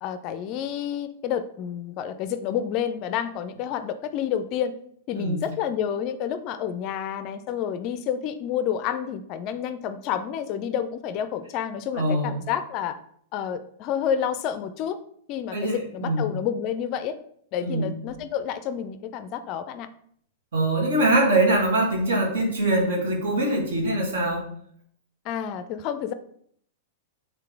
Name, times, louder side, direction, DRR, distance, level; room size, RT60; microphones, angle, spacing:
voice 1, 0.0-4.7 5.1-13.0 13.3-15.0 15.3-17.2 17.5-19.9 25.3-26.1, left 9 dB, 40° left, 11 dB, 0.4 m, -29 dB
voice 2, 11.9-12.4 15.5-16.3 17.6-17.9 20.5-24.5, right 1 dB, 65° right, 1 dB, 1.3 m, -23 dB
4.8 x 3.3 x 3.3 m, 0.64 s
figure-of-eight pair, 100°, 0 cm